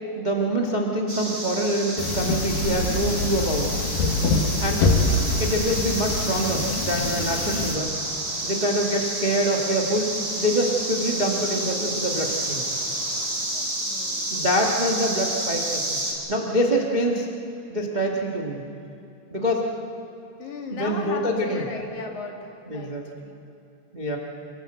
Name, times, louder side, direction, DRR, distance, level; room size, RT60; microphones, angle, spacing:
voice 1, 0.1-3.7 4.6-4.8 5.4-7.9 8.4-12.6 14.3-15.8 16.3-17.3 17.7-18.6 19.3-19.7 20.8-21.6 22.7-23.0 23.9-24.2, right 1 dB, 85° right, -1 dB, 0.4 m, -25 dB
sound 1, 1.1-16.1, right 1 dB, 25° right, 4.9 m, -30 dB
sound 2, 2.0-7.8, left 2 dB, 75° left, 3.5 m, -25 dB
sound 3, 2.5-13.3, right 2 dB, 65° right, 5.4 m, -46 dB
voice 2, 13.5-14.3 20.4-23.4, left 4 dB, 55° left, 1 dB, 3.4 m, -37 dB
27.0 x 18.0 x 8.0 m, 2.7 s
omnidirectional pair, 4.3 m